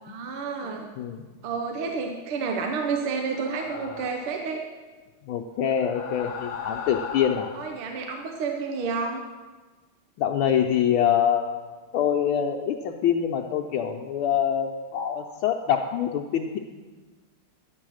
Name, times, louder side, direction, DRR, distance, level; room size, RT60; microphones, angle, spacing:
voice 1, 0.0-0.9 1.4-4.6 7.5-9.2, right 5 dB, 75° right, 2 dB, 1.8 m, -30 dB
voice 2, 0.6-1.3 5.3-7.5 10.2-11.5 11.9-16.6, left 9 dB, 75° left, 2 dB, 1.5 m, -25 dB
sound 1, 3.2-4.4 5.6-7.8, left 7 dB, 50° left, 1.2 m, -37 dB
11.5 x 8.4 x 6.3 m, 1.3 s
omnidirectional pair, 2.4 m